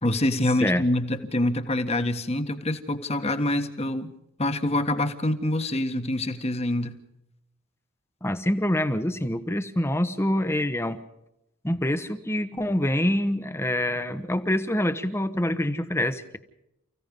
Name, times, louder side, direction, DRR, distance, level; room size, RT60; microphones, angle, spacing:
voice 1, 0.0-4.1 4.4-7.0, left 1 dB, 30° left, 9 dB, 1.6 m, -26 dB
voice 2, 8.2-11.0 11.6-16.4, left 1 dB, 10° left, 11 dB, 1.1 m, -26 dB
30.0 x 16.0 x 5.4 m, 0.84 s
head